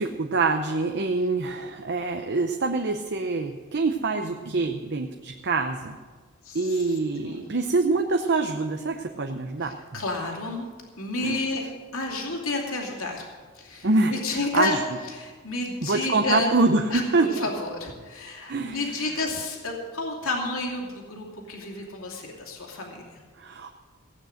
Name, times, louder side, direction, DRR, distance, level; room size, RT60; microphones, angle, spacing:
voice 1, 0.0-6.0 6.5-9.7 11.2-11.4 13.8-14.8 15.8-16.8 17.1-17.5 18.5-18.8 23.4-23.7, right 3 dB, 55° right, 5 dB, 0.7 m, -25 dB
voice 2, 6.4-7.5 9.6-10.7 11.0-11.6 11.9-16.5 16.9-23.2, left 2 dB, 80° left, 0 dB, 2.6 m, -31 dB
16.5 x 9.2 x 6.5 m, 1.5 s
head